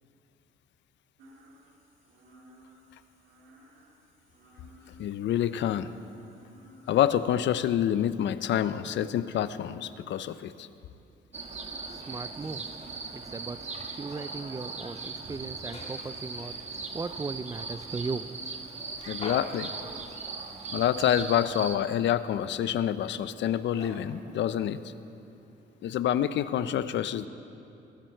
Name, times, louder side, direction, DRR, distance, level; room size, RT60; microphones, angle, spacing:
sound 1, 1.2-7.4, equal, 85° right, 1.9 m, -56 dB
voice 1, 5.0-5.9 6.9-10.7 19.1-19.7 20.7-24.8 25.8-27.3, left 10 dB, 65° left, 14 dB, 0.5 m, -27 dB
sound 2, 11.3-21.8, right 4 dB, 35° right, 1.1 m, -39 dB
voice 2, 11.9-12.7 13.1-13.6 13.9-16.6 16.9-18.3, right 3 dB, 20° right, 14 dB, 0.3 m, -37 dB
sound 3, 12.1-25.9, left 2 dB, 35° left, 1.9 m, -51 dB
19.5 x 9.2 x 4.5 m, 2.8 s
cardioid pair, 90°, 20 cm